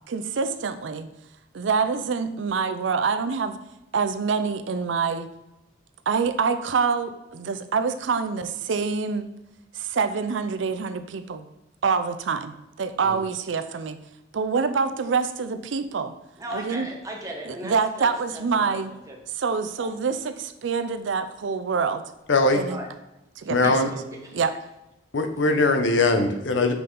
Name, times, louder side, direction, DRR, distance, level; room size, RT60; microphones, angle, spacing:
voice 1, 0.1-1.1 1.5-3.6 3.9-5.3 6.1-9.3 9.7-11.5 11.8-14.0 14.3-16.1 16.5-16.9 17.4-18.9 19.4-22.0 22.5-22.8 23.4-23.8 24.3-24.5, right 5 dB, 75° right, 11 dB, 0.5 m, -26 dB
voice 2, 16.4-19.2 19.8-19.9 22.7-22.9 23.6-24.4, right 1 dB, 20° right, 0 dB, 1.2 m, -38 dB
voice 3, 22.3-22.6 23.5-23.9 25.1-26.7, left 2 dB, 70° left, 6 dB, 0.8 m, -20 dB
5.8 x 5.5 x 3.8 m, 0.95 s
head